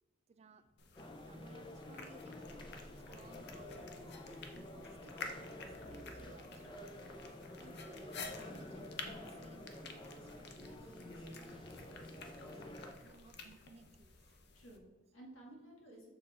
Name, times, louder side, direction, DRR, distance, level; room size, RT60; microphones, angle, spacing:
voice 1, 0.3-0.6 1.2-4.1 4.5-6.8 7.6-11.8 12.2-14.2, right 3 dB, 35° right, 10 dB, 0.4 m, -61 dB
sound 1, 0.8-14.8, left 4 dB, 60° left, 0.7 m, -52 dB
sound 2, 1.0-12.9, left 1 dB, 25° left, 0.5 m, -50 dB
voice 2, 11.4-11.8 14.5-16.1, right 1 dB, 85° left, -2 dB, 1.9 m, -56 dB
6.5 x 4.4 x 4.2 m, 1.2 s
head